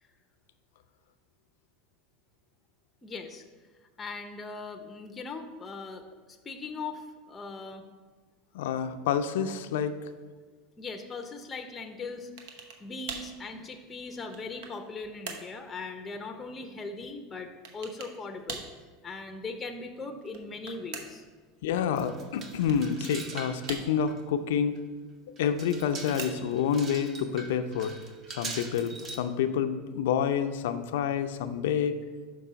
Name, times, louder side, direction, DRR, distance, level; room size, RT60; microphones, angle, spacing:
voice 1, 3.0-3.4 4.0-6.1 6.4-7.9 10.8-18.6 19.0-21.2, left 3 dB, 20° left, 5 dB, 0.6 m, -39 dB
voice 2, 8.5-9.9 21.6-24.7 25.4-27.9 28.4-32.0, left 8 dB, 85° left, 8 dB, 0.5 m, -28 dB
sound 1, 12.4-12.8 13.1-13.4 14.0-14.8 15.3-15.5 17.6-18.2 18.5-18.8 20.2-21.3 22.7-23.2 23.7-24.2 25.6-26.6, right 5 dB, 75° right, 0.9 m, -41 dB
sound 2, 22.0-23.8 24.1-24.2 24.8-24.9 25.4-29.2, right 3 dB, 30° right, 0.8 m, -42 dB
6.0 x 4.7 x 5.7 m, 1.4 s
supercardioid pair, 135°, 0 cm